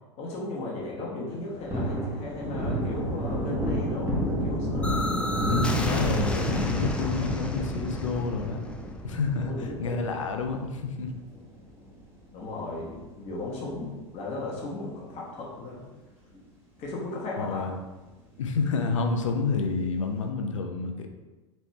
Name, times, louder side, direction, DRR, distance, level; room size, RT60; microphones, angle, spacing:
voice 1, 0.2-5.0 9.4-10.0 12.3-15.8 16.8-17.7, left 2 dB, 40° left, -4 dB, 1.2 m, -36 dB
Thunder, 1.3-12.0 12.4-12.5 12.9-14.4 14.6-14.8 15.1-15.9 16.3-16.4 16.8-16.9 19.3-19.8, equal, 15° right, 1.4 m, -32 dB
sound 1, 4.8-10.6, left 1 dB, 5° left, 0.5 m, -32 dB
voice 2, 5.5-8.6 9.0-11.1 17.4-17.7 18.4-21.1, left 4 dB, 80° left, 4 dB, 0.6 m, -29 dB
4.2 x 3.2 x 3.2 m, 1.2 s
hypercardioid pair, 90°, 16 cm